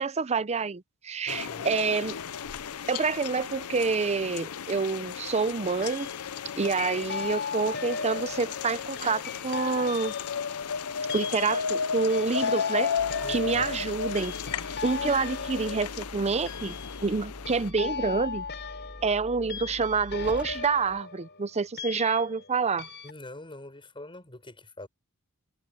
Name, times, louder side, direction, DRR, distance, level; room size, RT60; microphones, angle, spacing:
voice 1, 0.0-2.2 2.9-6.1 6.6-10.1 11.1-12.9 13.3-14.3 14.8-16.8 17.0-18.4 19.0-22.9, right 4 dB, 30° right, 0.6 m, -27 dB
sound 1, 1.3-17.7, left 6 dB, 85° left, 0.6 m, -34 dB
voice 2, 1.3-1.8 13.2-13.7 23.0-24.9, left 1 dB, 25° left, 7.2 m, -45 dB
sound 2, 4.5-5.0 5.8-6.4 6.8-22.5 22.8-23.1, left 5 dB, 55° left, 6.9 m, -38 dB
sound 3, 13.0-21.0, equal, 5° right, 4.5 m, -45 dB
head